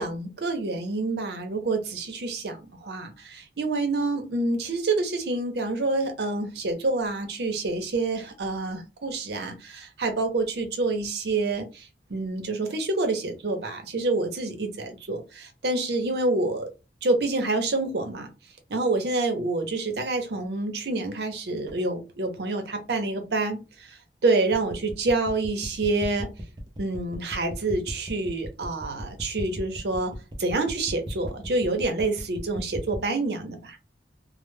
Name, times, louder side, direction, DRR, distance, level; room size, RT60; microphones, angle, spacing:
voice 1, 0.0-16.7 17.0-18.3 18.7-26.3 26.8-30.1 30.4-33.8, right 2 dB, 70° right, 0.6 m, -27 dB
sound 1, 24.5-33.1, equal, 25° right, 0.5 m, -37 dB
2.1 x 2.0 x 3.2 m
head